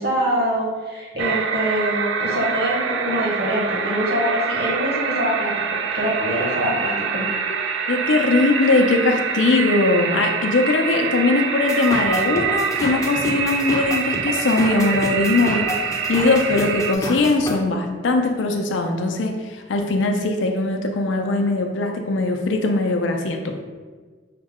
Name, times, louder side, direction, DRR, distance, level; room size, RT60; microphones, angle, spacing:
voice 1, 0.0-5.5 5.9-7.3, equal, 60° right, -4 dB, 1.2 m, -24 dB
sound 1, 1.2-16.9, right 6 dB, 80° right, 0.3 m, -25 dB
voice 2, 7.9-23.6, left 2 dB, 80° left, 4 dB, 0.5 m, -20 dB
sound 2, 11.7-17.5, left 1 dB, 20° left, 0.4 m, -30 dB
5.6 x 2.1 x 3.6 m, 1.4 s
head